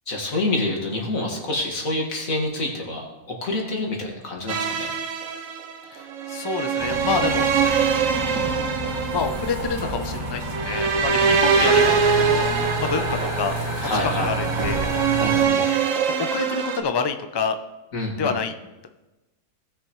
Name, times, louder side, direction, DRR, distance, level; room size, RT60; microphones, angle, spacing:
voice 1, 0.1-4.9 11.2-11.7 13.8-14.3 15.2-15.7 17.9-18.3, left 2 dB, 70° left, -1 dB, 2.5 m, -27 dB
sound 1, 4.5-16.8, right 6 dB, 65° right, 1.2 m, -23 dB
voice 2, 5.9-7.5 9.1-12.5 12.8-14.9 16.0-17.6 18.2-18.5, left 5 dB, 40° left, 7 dB, 0.3 m, -27 dB
sound 2, 6.8-15.4, right 1 dB, 20° right, 1.8 m, -29 dB
18.5 x 6.7 x 3.2 m, 1.1 s
omnidirectional pair, 1.5 m